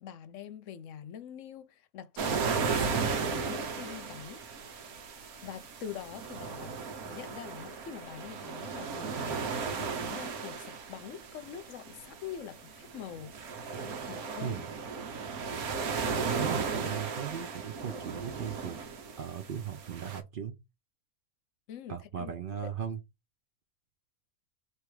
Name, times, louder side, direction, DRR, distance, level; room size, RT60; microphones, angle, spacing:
voice 1, 0.0-3.1 3.5-4.4 5.4-6.8 7.0-13.3 14.1-14.6 15.4-15.6 21.7-22.3 22.6-22.7, left 8 dB, 65° left, 0.9 m, -44 dB
sound 1, 2.2-20.2, right 5 dB, 80° right, 1.4 m, -35 dB
voice 2, 16.2-18.8 19.2-20.6 21.9-23.0, right 8 dB, 60° right, 0.5 m, -37 dB
3.4 x 3.1 x 4.6 m
omnidirectional pair, 1.5 m